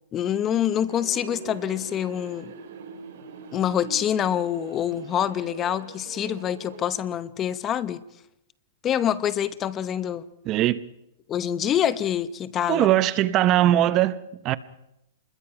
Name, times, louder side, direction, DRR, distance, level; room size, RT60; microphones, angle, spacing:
voice 1, 0.1-2.5 3.5-8.0 8.8-10.3 11.3-12.9, left 10 dB, 20° left, 0.8 m, -26 dB
sound 1, 0.9-6.8, right 6 dB, 55° right, 4.6 m, -43 dB
voice 2, 10.5-10.8 12.7-14.6, right 13 dB, 30° right, 0.8 m, -21 dB
26.5 x 21.0 x 5.8 m
hypercardioid pair, 145°, 0 cm